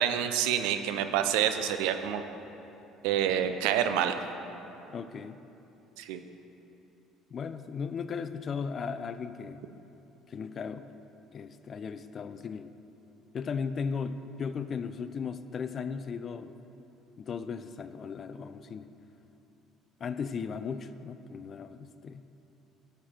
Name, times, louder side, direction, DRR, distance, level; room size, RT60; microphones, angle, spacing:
voice 1, 0.0-2.2 3.0-4.2 6.0-6.2, right 9 dB, 80° right, 8 dB, 0.6 m, -27 dB
voice 2, 4.9-5.4 7.3-9.6 10.3-10.9 11.3-12.7 13.3-16.6 17.2-18.9 20.0-22.2, left 6 dB, 45° left, 12 dB, 0.4 m, -36 dB
12.5 x 6.6 x 4.4 m, 2.9 s
supercardioid pair, 80°, 0 cm